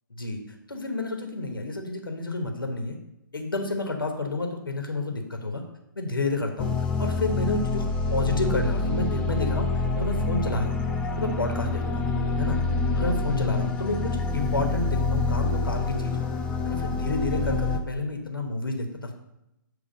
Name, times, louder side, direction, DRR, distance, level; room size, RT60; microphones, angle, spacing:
voice 1, 0.7-3.0 3.3-5.6 6.0-6.7 7.0-10.8 11.2-12.1 12.4-12.6 12.9-16.3 16.6-19.1, left 2 dB, 80° left, 4 dB, 1.1 m, -30 dB
sound 1, 6.6-17.8, left 3 dB, 10° left, 0.4 m, -26 dB
7.3 x 3.2 x 5.2 m, 0.88 s
figure-of-eight pair, 135°, 11 cm